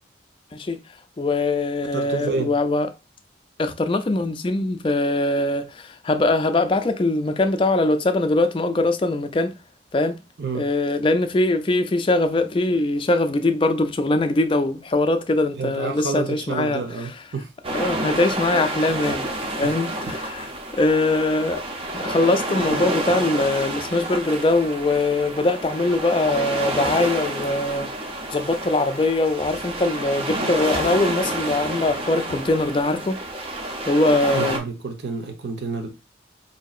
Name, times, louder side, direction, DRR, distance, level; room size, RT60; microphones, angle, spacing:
voice 1, 1.2-2.9 3.6-9.6 9.9-10.2 10.5-17.1 17.7-19.3 19.6-21.6 21.9-27.9 28.3-33.2 33.9-34.6, left 2 dB, 30° left, 0.4 m, -22 dB
voice 2, 1.9-2.5 10.4-10.7 15.6-17.5 19.6-19.7 34.3-35.9, right 4 dB, 70° right, 0.7 m, -29 dB
sound 1, 17.6-34.6, right 1 dB, 30° right, 0.6 m, -29 dB
5.0 x 2.7 x 2.4 m
head